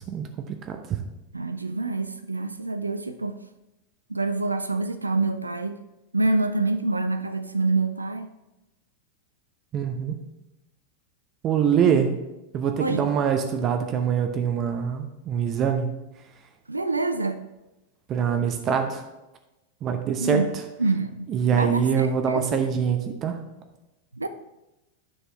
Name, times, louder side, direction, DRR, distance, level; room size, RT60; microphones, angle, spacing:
voice 1, 0.1-1.0 9.7-10.2 11.4-12.1 12.5-15.9 18.1-19.0 19.8-20.4 21.3-23.4, right 7 dB, 30° right, 6 dB, 0.7 m, -24 dB
voice 2, 1.3-3.4 4.1-5.8 6.1-8.3 11.9-12.0 12.8-13.1 16.7-17.4 20.2-20.5 20.8-22.6 24.1-24.3, right 3 dB, 80° right, 9 dB, 0.4 m, -26 dB
9.3 x 6.1 x 3.4 m, 0.98 s
figure-of-eight pair, 90°, 0 cm